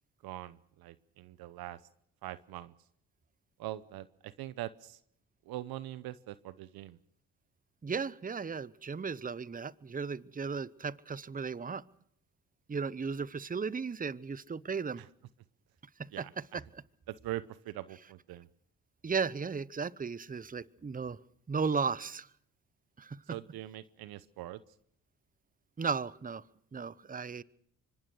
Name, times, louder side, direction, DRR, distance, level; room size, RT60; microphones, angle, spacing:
voice 1, 0.2-1.8 2.2-2.7 3.6-5.0 5.5-7.0 15.0-15.1 16.1-16.6 17.1-18.5 23.3-24.6, right 15 dB, 75° right, 16 dB, 0.9 m, -42 dB
voice 2, 7.8-11.8 12.7-15.0 16.0-16.3 16.5-16.8 19.0-21.2 21.5-22.3 23.0-23.2 25.8-26.4 26.7-27.4, right 5 dB, 25° right, 19 dB, 0.9 m, -35 dB
25.0 x 19.5 x 6.3 m, 0.70 s
supercardioid pair, 55°, 37 cm